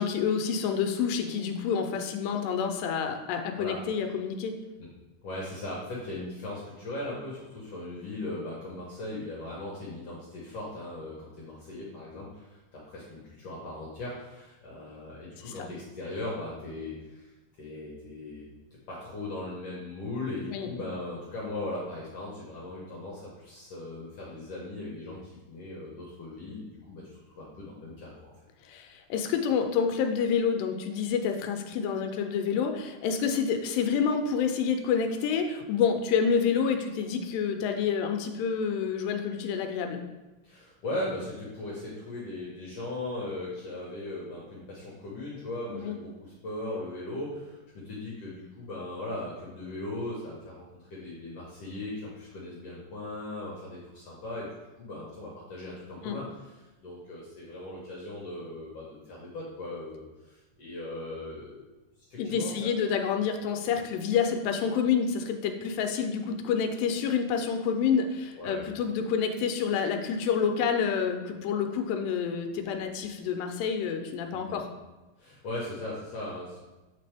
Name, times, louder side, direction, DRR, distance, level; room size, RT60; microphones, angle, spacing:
voice 1, 0.0-4.6 15.5-15.7 20.5-20.7 28.7-40.0 45.7-46.0 56.0-56.2 62.2-74.7, left 6 dB, 85° left, 5 dB, 2.3 m, -28 dB
voice 2, 5.2-17.3 17.6-18.5 18.9-28.3 40.4-54.5 54.8-61.6 62.1-62.7 68.4-68.6 74.3-74.6 75.2-76.6, left 2 dB, 65° left, -5 dB, 1.6 m, -38 dB
8.3 x 3.7 x 3.4 m, 1.1 s
omnidirectional pair, 3.9 m